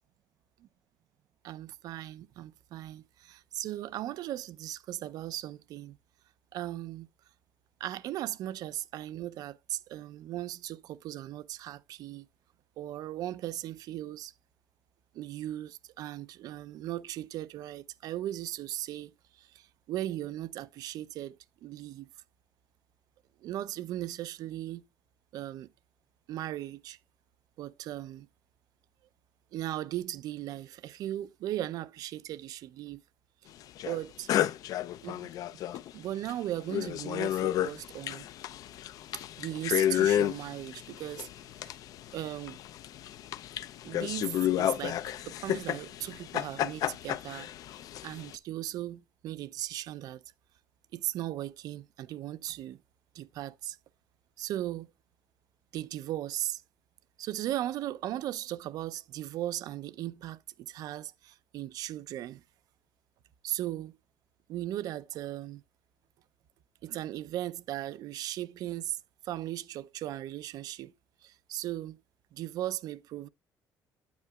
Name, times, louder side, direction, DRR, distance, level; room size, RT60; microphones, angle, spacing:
voice 1, 1.4-6.0 6.5-7.1 7.8-12.3 12.8-14.3 15.1-21.4 21.6-22.1 23.4-24.8 25.3-25.7 26.3-27.0 27.6-28.3 29.5-33.0 33.8-34.3 35.0-35.3 35.9-38.2 39.1-41.3 41.6-41.7 42.1-42.6 43.8-45.0 45.2-47.5 48.0-50.2 50.9-52.8 53.1-53.8 54.4-54.9 55.7-56.6 57.2-62.4 63.4-64.0 64.5-65.6 66.8-69.0 69.2-70.9 71.2-72.0 72.3-73.3, right 13 dB, 60° right, 0.5 m, -37 dB
sound 1, 33.8-34.0 34.3-35.9 36.3-36.4 36.6-48.3, left 11 dB, 55° left, 0.4 m, -31 dB
9.4 x 8.6 x 2.3 m
cardioid pair, 175°, 7 cm